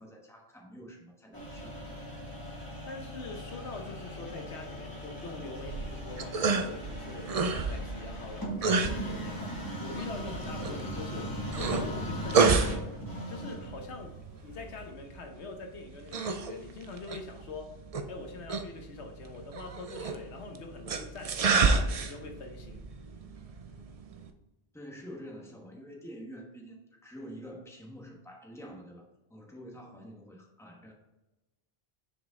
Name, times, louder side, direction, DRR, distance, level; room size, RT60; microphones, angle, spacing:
voice 1, 0.0-1.8 24.7-30.9, equal, 5° left, -1 dB, 1.2 m, -47 dB
sound 1, 1.3-14.9, equal, 20° left, 2.1 m, -39 dB
voice 2, 2.9-12.9 13.3-14.1 14.4-17.8 18.1-22.8, left 3 dB, 90° left, 4 dB, 1.3 m, -44 dB
sound 2, 5.6-24.3, right 4 dB, 45° right, 0.5 m, -31 dB
6.4 x 5.1 x 3.7 m, 1.0 s
omnidirectional pair, 1.1 m